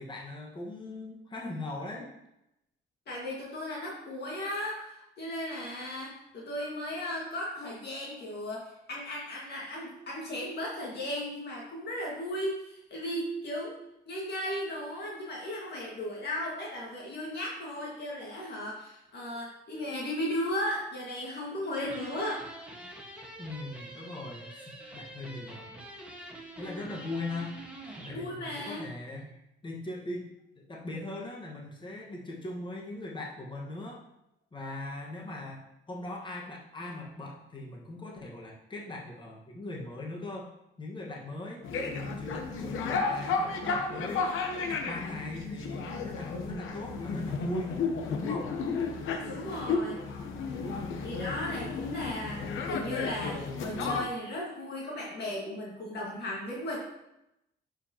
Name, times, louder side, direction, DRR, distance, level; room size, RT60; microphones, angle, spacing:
voice 1, 0.0-2.1 19.7-19.9 23.4-25.8 26.6-27.6 28.0-29.3 29.6-30.3 30.7-34.0 34.5-40.5 40.8-44.3 44.7-47.8 48.1-48.6, left 2 dB, 25° left, -2 dB, 1.5 m, -40 dB
voice 2, 3.1-13.8 14.1-22.5 26.5-26.6 28.1-28.9 49.3-50.0 51.0-56.8, left 1 dB, 55° left, -4 dB, 1.9 m, -36 dB
sound 1, 21.8-28.2, right 1 dB, 5° right, 1.5 m, -46 dB
sound 2, 41.6-54.1, left 4 dB, 85° left, 1.0 m, -33 dB
11.0 x 5.0 x 2.9 m, 0.85 s
cardioid pair, 90°, 20 cm